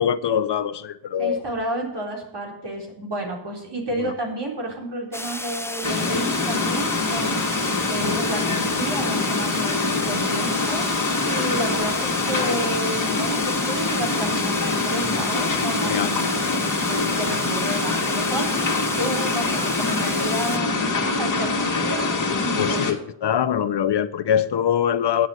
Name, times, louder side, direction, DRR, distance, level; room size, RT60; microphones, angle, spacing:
voice 1, 0.0-1.4 4.0-4.1 8.0-8.2 15.8-16.1 22.6-25.3, left 9 dB, 60° left, 0.7 m, -23 dB
voice 2, 1.2-7.5 7.9-22.9, right 1 dB, 55° right, 3.9 m, -31 dB
sound 1, 5.1-20.6, left 1 dB, 5° left, 0.8 m, -32 dB
sound 2, 5.8-22.9, left 3 dB, 40° left, 2.3 m, -24 dB
9.2 x 7.2 x 7.9 m
cardioid pair, 60°, 48 cm